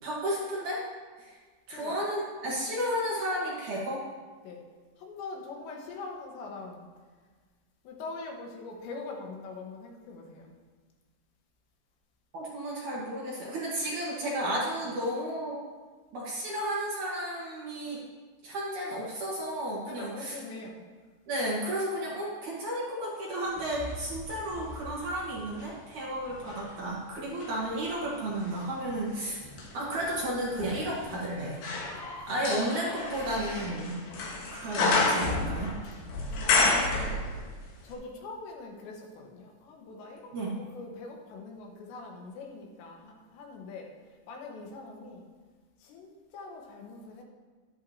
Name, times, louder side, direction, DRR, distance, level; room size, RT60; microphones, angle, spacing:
voice 1, 0.0-0.8 1.2-1.3 1.7-4.0 12.3-15.6 16.1-18.0 18.4-20.4 21.3-29.4 29.7-31.6 32.3-34.0 34.5-35.7 40.3-40.5, right 1 dB, 60° right, -5 dB, 2.4 m, -33 dB
voice 2, 5.0-6.9 7.9-10.5 19.9-20.8 36.3-37.2 37.8-45.3 45.8-47.2, left 3 dB, 85° left, 0 dB, 3.6 m, -43 dB
sound 1, 23.6-25.8 26.3-37.6 37.9-38.0, left 3 dB, 65° left, 2.9 m, -31 dB
11.5 x 11.0 x 2.8 m, 1.4 s
omnidirectional pair, 5.0 m